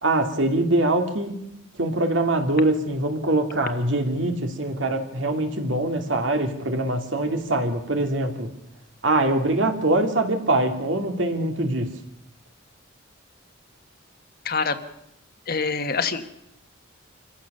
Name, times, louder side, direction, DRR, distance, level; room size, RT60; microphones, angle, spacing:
voice 1, 0.0-1.4 1.8-8.5 9.0-11.9, right 2 dB, 65° right, 5 dB, 2.5 m, -23 dB
voice 2, 14.4-14.7 15.5-16.2, left 5 dB, 50° left, 8 dB, 1.4 m, -25 dB
26.5 x 15.5 x 6.7 m, 0.80 s
head